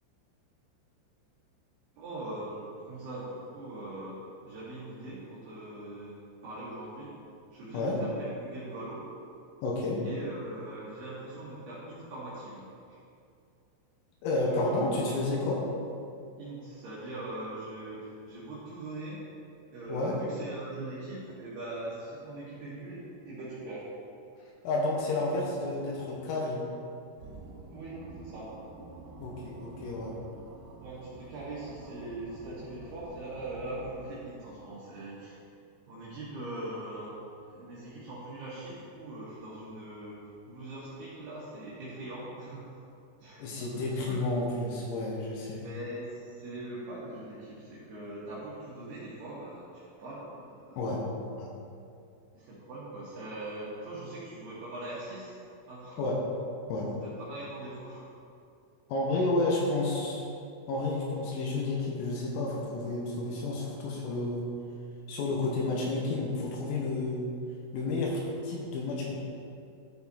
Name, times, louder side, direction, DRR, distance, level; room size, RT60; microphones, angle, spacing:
voice 1, 2.0-7.1 7.5-9.1 10.0-13.0 14.4-15.0 16.4-19.3 19.7-23.9 27.7-28.6 30.8-35.4 35.9-37.2 37.5-42.6 43.2-44.2 45.6-50.9 52.3-55.4 55.7-56.0 56.9-58.1, right 2 dB, 65° right, -9 dB, 2.9 m, -41 dB
voice 2, 9.6-10.0 14.2-15.6 19.9-20.2 24.7-26.6 29.2-30.2 43.4-45.7 50.8-51.0 51.4-51.5 56.0-56.2 56.7-56.9 58.9-60.3 60.7-64.5 65.1-67.3 67.7-69.1, left 2 dB, 80° left, -3 dB, 3.6 m, -31 dB
sound 1, 27.2-34.4, right 3 dB, 85° right, 3.7 m, -49 dB
13.0 x 4.6 x 4.1 m, 2.5 s
omnidirectional pair, 5.9 m